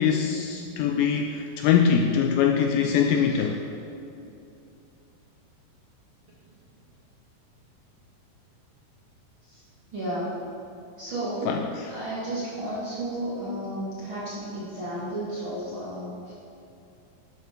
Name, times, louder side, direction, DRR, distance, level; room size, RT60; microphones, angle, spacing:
voice 1, 0.0-3.6 11.5-11.6, left 7 dB, 85° left, 4 dB, 2.2 m, -23 dB
voice 2, 9.9-10.3 11.0-11.6 11.9-16.3, right 1 dB, 45° right, -8 dB, 1.8 m, -32 dB
11.0 x 11.0 x 4.4 m, 2.7 s
omnidirectional pair, 4.8 m